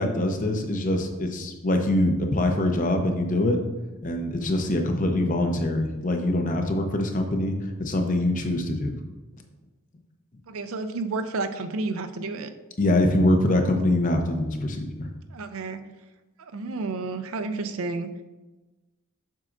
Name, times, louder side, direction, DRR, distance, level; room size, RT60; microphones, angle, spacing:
voice 1, 0.0-3.6 4.0-9.0 12.8-15.1, left 1 dB, 35° left, 4 dB, 0.7 m, -24 dB
voice 2, 10.5-12.5 15.3-15.8 16.4-18.1, right 3 dB, 70° right, 9 dB, 0.5 m, -31 dB
7.4 x 6.3 x 2.5 m, 1.1 s
head